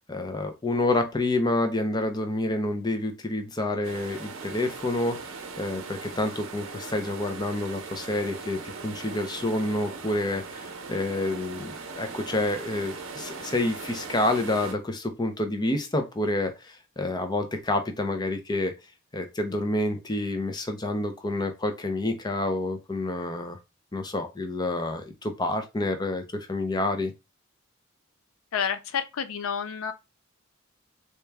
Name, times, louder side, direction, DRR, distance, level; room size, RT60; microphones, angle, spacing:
voice 1, 0.1-18.7 19.1-23.6 23.9-27.1, left 2 dB, 20° left, 0.6 m, -28 dB
sound 1, 3.8-14.7, right 4 dB, 75° right, 0.8 m, -39 dB
voice 2, 28.5-29.9, left 7 dB, 80° left, 0.4 m, -29 dB
3.3 x 3.0 x 3.4 m
head